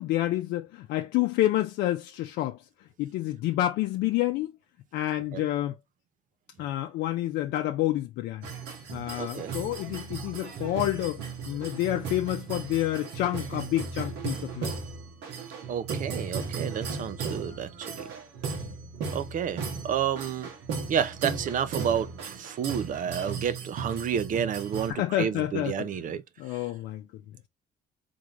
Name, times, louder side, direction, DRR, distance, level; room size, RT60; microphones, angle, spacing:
voice 1, 0.0-2.6 3.0-4.5 4.9-5.8 6.6-8.5 8.9-14.7 18.6-18.7 24.9-25.9 26.4-27.1, left 14 dB, 85° left, 0.6 m, -29 dB
sound 1, 8.4-24.9, right 5 dB, 80° right, 1.8 m, -36 dB
voice 2, 9.2-9.5 15.7-17.9 19.1-20.5 20.9-26.2, right 8 dB, 50° right, 0.7 m, -30 dB
3.8 x 3.7 x 2.9 m
cardioid pair, 110°, 17 cm